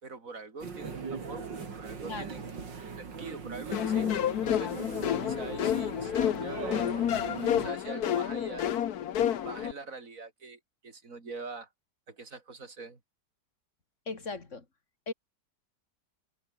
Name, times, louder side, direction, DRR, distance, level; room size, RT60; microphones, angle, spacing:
voice 1, 0.0-2.4 3.0-4.7 5.2-7.0 7.3-8.6 9.4-11.7 12.1-13.0, right 4 dB, 50° right, 3.8 m, -44 dB
sound 1, 0.6-7.7, right 5 dB, 90° right, 3.4 m, -40 dB
sound 2, 3.7-9.7, left 10 dB, 60° left, 1.5 m, -29 dB
voice 2, 14.1-14.6 15.1-15.2, left 4 dB, 40° left, 3.2 m, -37 dB
omnidirectional pair, 1.9 m